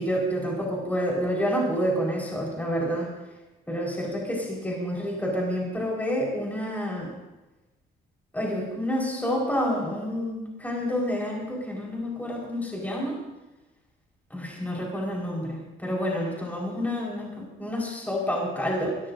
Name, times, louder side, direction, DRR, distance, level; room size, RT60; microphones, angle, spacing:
voice 1, 0.0-3.1 3.7-7.1 8.3-13.2 14.3-19.0, equal, 10° left, -3 dB, 4.7 m, -28 dB
23.0 x 14.0 x 2.7 m, 1.1 s
cardioid pair, 90°, 20 cm